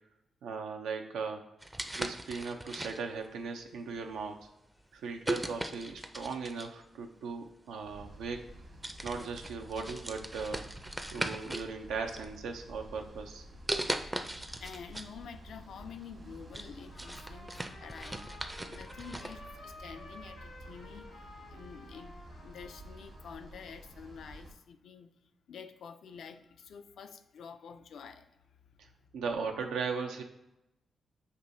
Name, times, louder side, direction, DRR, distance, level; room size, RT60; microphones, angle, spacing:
voice 1, 0.4-1.4 1.9-4.5 4.9-8.4 9.0-10.7 11.1-13.5 28.8-28.9 29.1-30.2, right 5 dB, 85° right, 4 dB, 0.5 m, -38 dB
sound 1, 1.6-3.3 4.0-4.2 5.2-6.8 7.9-8.0 8.4-8.6 8.8-11.7 12.1-12.8 13.7-15.1 15.5-15.6 16.1-19.4, right 1 dB, 15° right, 0.4 m, -39 dB
sound 2, 7.8-24.5, right 1 dB, 55° right, 1.2 m, -51 dB
voice 2, 13.9-18.3 18.7-22.2 22.4-25.1 25.5-29.1, left 6 dB, 75° left, 9 dB, 0.3 m, -49 dB
Trumpet, 16.8-23.5, left 2 dB, 90° left, 1.1 m, -52 dB
6.6 x 2.7 x 2.6 m, 0.91 s
supercardioid pair, 55°, 0 cm